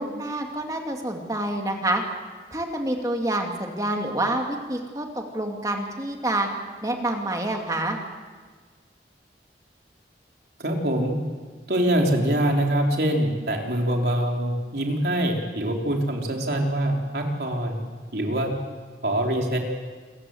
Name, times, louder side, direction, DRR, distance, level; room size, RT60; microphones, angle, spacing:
voice 1, 0.0-2.0 2.5-6.5 6.8-8.0, right 1 dB, 20° right, 2 dB, 2.4 m, -27 dB
voice 2, 10.6-11.2 11.7-17.8 18.1-18.5 19.0-19.6, right 1 dB, 70° right, 1 dB, 3.6 m, -24 dB
28.0 x 15.0 x 7.9 m, 1.5 s
head